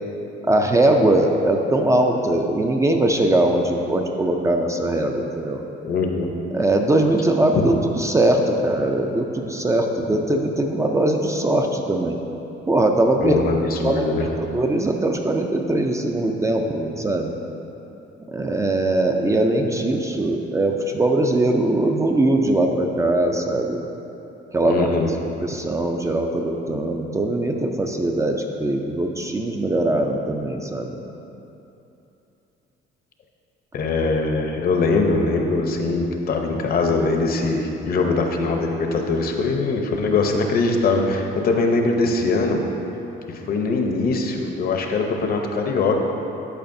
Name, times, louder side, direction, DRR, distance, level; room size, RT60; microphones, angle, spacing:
voice 1, 0.4-5.6 6.5-12.2 12.7-13.4 13.8-17.3 18.3-23.8 24.5-24.9 25.4-31.0, right 1 dB, 15° right, 3 dB, 0.4 m, -21 dB
voice 2, 5.8-6.3 7.5-7.6 13.2-14.3 24.6-25.1 33.7-42.6 43.3-46.0, left 3 dB, 50° left, 3 dB, 0.7 m, -22 dB
11.0 x 5.0 x 2.6 m, 2.9 s
cardioid pair, 125°, 20 cm